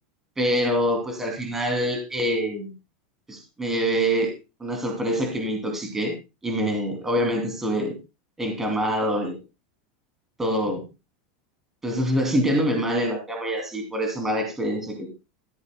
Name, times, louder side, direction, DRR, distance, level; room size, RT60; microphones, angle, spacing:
voice 1, 0.4-2.7 3.3-4.3 4.6-6.2 6.4-8.0 8.4-9.4 10.4-10.8 11.8-15.1, equal, 10° right, 3 dB, 2.8 m, -25 dB
14.5 x 14.5 x 2.3 m, 0.26 s
supercardioid pair, 180°, 5 cm